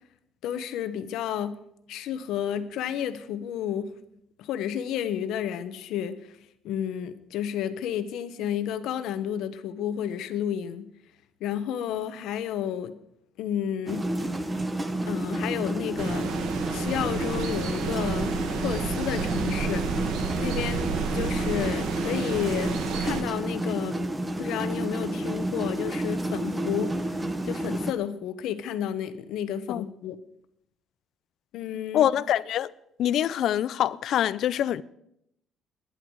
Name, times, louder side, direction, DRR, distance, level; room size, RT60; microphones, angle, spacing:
voice 1, 0.4-1.6 1.9-4.0 4.4-6.2 6.6-10.9 11.4-13.0 13.4-14.1 14.5-14.7 15.1-16.4 16.7-19.9 20.4-24.0 24.4-27.2 27.5-30.2 31.5-32.1, left 9 dB, 70° left, 1.0 m, -31 dB
sound 1, 13.9-27.9, right 1 dB, 10° right, 0.9 m, -30 dB
sound 2, 16.0-23.2, right 6 dB, 65° right, 1.7 m, -31 dB
voice 2, 31.9-32.7 33.0-34.8, left 11 dB, 50° left, 0.4 m, -24 dB
19.5 x 10.5 x 4.7 m
cardioid pair, 175°, 0 cm